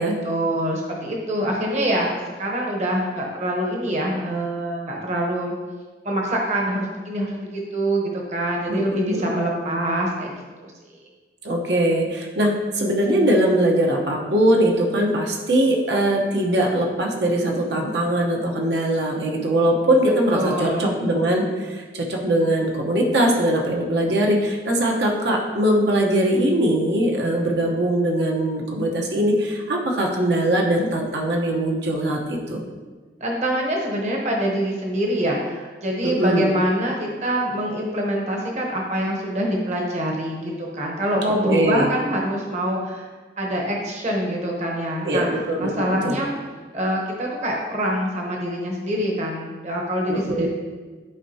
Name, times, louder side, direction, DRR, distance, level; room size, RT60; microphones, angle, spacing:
voice 1, 0.2-5.5 6.0-10.7 20.3-20.9 33.2-43.1 43.4-45.3 45.6-46.3 46.7-50.5, right 1 dB, 40° right, -1 dB, 1.0 m, -25 dB
voice 2, 8.7-9.4 11.4-32.6 36.0-36.5 41.4-41.9 45.0-46.2 50.1-50.5, right 1 dB, 75° right, 0 dB, 1.0 m, -21 dB
11.0 x 4.6 x 2.8 m, 1.4 s
head